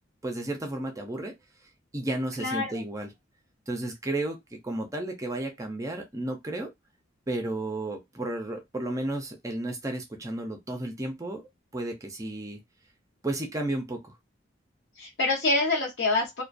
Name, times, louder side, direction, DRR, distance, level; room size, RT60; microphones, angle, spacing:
voice 1, 0.2-1.3 1.6-3.1 3.7-6.7 7.3-12.6 13.2-14.1, right 1 dB, 15° right, 0.4 m, -33 dB
voice 2, 2.4-2.8 15.0-16.4, left 2 dB, 65° left, 0.7 m, -26 dB
2.4 x 2.1 x 2.4 m
head